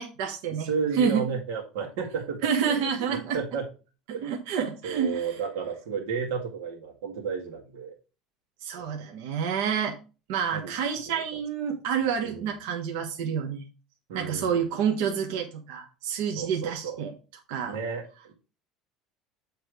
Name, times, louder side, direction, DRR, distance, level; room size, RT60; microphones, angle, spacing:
voice 1, 0.0-0.7 0.9-1.2 2.4-3.4 4.2-5.3 8.6-10.0 10.3-13.6 14.1-17.1 17.5-17.8, right 7 dB, 75° right, 3 dB, 1.1 m, -28 dB
voice 2, 0.6-2.4 2.6-3.6 4.1-4.3 4.8-7.9 8.8-8.9 10.5-10.7 11.1-11.4 12.2-12.5 14.1-14.6 16.4-17.0 17.7-18.3, right 6 dB, 90° right, -1 dB, 1.9 m, -33 dB
8.5 x 3.2 x 4.8 m, 0.32 s
cardioid pair, 175°, 0 cm